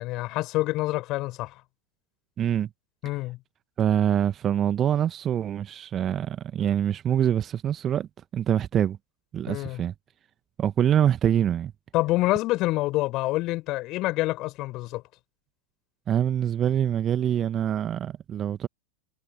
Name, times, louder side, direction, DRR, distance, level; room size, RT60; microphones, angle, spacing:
voice 1, 0.0-1.5 3.0-3.4 9.5-9.8 11.9-15.0, left 19 dB, 40° left, 5.4 m, -27 dB
voice 2, 2.4-2.7 3.8-9.0 9.3-9.9 10.6-11.7 16.1-18.7, right 10 dB, 25° right, 1.4 m, -25 dB
figure-of-eight pair, 90°, 0 cm